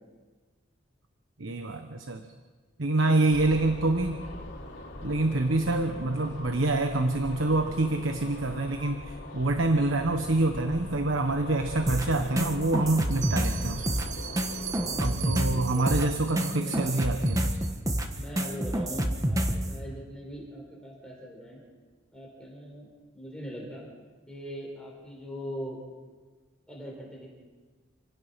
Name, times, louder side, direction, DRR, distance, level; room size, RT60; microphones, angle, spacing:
voice 1, 1.4-2.2 2.8-4.2 5.0-13.9 15.0-17.6, right 2 dB, 85° right, 6 dB, 1.2 m, -26 dB
sound 1, 3.3-15.1, left 1 dB, 60° left, 3.8 m, -41 dB
sound 2, 11.9-19.7, right 1 dB, 15° right, 1.4 m, -28 dB
Bell, 13.1-17.7, right 9 dB, 40° right, 0.8 m, -40 dB
voice 2, 14.8-16.0 16.5-17.0 18.1-21.6 22.1-23.9 24.3-25.8 26.7-27.3, equal, 5° left, -2 dB, 4.7 m, -41 dB
28.0 x 17.0 x 5.8 m, 1.4 s
head